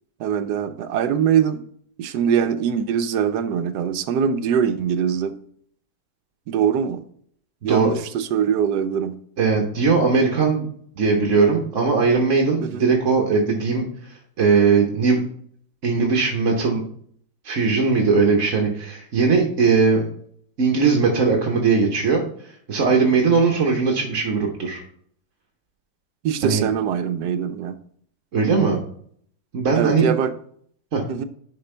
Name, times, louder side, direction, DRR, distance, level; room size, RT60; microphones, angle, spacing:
voice 1, 0.2-1.6 2.0-5.4 6.5-7.0 7.6-9.2 12.6-12.8 26.2-27.8 29.7-30.3 31.1-31.3, right 8 dB, 75° right, 10 dB, 1.2 m, -22 dB
voice 2, 7.6-7.9 9.4-10.7 11.0-15.2 15.8-16.8 17.4-20.0 20.6-24.8 26.4-26.6 28.3-28.8 29.5-30.1 30.9-31.0, right 4 dB, 50° right, 0 dB, 1.3 m, -19 dB
11.0 x 4.5 x 3.3 m, 0.62 s
omnidirectional pair, 1.8 m